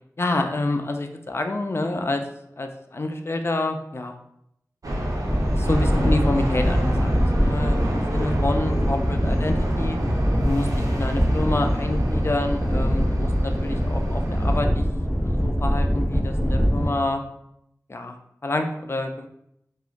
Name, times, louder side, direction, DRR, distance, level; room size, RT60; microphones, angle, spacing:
voice 1, 0.2-2.2 2.6-4.1 5.5-10.0 10.4-14.8 15.1-17.2 17.9-18.2 18.4-19.3, left 2 dB, 40° left, 5 dB, 0.3 m, -28 dB
sound 1, 4.8-14.6, equal, 70° right, 0.5 m, -29 dB
sound 2, 5.2-16.9, equal, ahead, 1.0 m, -23 dB
3.0 x 2.3 x 2.4 m, 0.76 s
wide cardioid pair, 55°, 6 cm